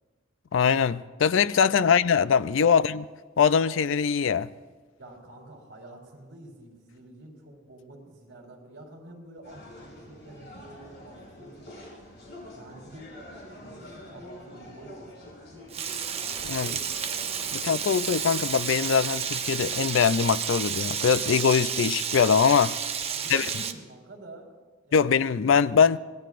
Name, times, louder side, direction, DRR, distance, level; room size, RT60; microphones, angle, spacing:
voice 1, 0.5-3.0 3.4-4.5 16.5-16.7 17.6-22.7 23.3-23.5 24.9-26.0, left 6 dB, 70° left, 0.4 m, -22 dB
voice 2, 5.0-11.7 12.5-13.1 13.5-15.1 15.4-15.8 16.3-18.1 23.0-25.4, right 1 dB, 60° right, 3.8 m, -48 dB
sound 1, 9.4-19.9, equal, 50° left, 6.4 m, -46 dB
Frying (food), 15.7-23.7, right 7 dB, 30° right, 0.7 m, -31 dB
26.0 x 19.0 x 2.5 m
head